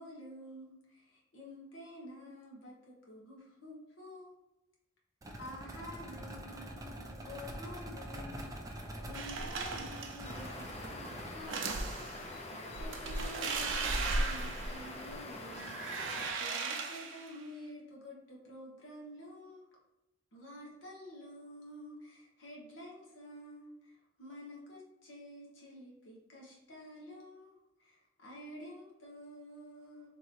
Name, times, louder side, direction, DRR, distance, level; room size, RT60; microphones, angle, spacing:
voice 1, 0.0-4.4 5.4-19.7 20.3-30.1, left 1 dB, 80° left, -3 dB, 1.3 m, -50 dB
sound 1, 5.2-11.3, right 1 dB, 20° right, 0.5 m, -45 dB
sound 2, 9.1-10.3 11.3-12.2 12.7-15.2 15.5-17.4, right 3 dB, 80° right, 0.6 m, -36 dB
sound 3, 10.2-16.3, left 2 dB, 35° left, 0.5 m, -45 dB
3.7 x 2.9 x 4.3 m, 0.95 s
head